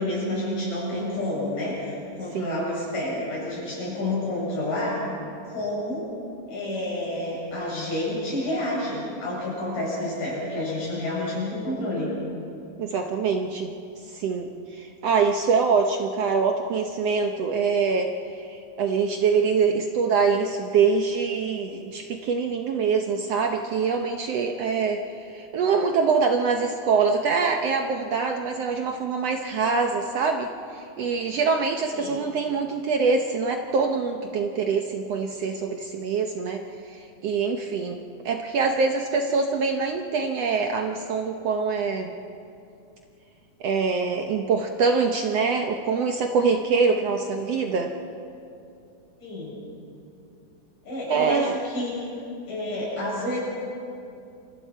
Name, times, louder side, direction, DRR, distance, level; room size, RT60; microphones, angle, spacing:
voice 1, 0.0-5.0 5.4-6.1 6.5-12.1 31.9-32.2 49.2-49.6 50.8-52.1 52.5-53.4, left 1 dB, 80° left, -5 dB, 9.4 m, -29 dB
voice 2, 2.3-2.7 12.8-13.7 14.1-36.6 36.9-38.0 38.2-42.1 43.6-47.9 51.1-51.5, right 5 dB, 70° right, 4 dB, 1.6 m, -24 dB
29.0 x 24.5 x 4.6 m, 2.6 s
omnidirectional pair, 3.7 m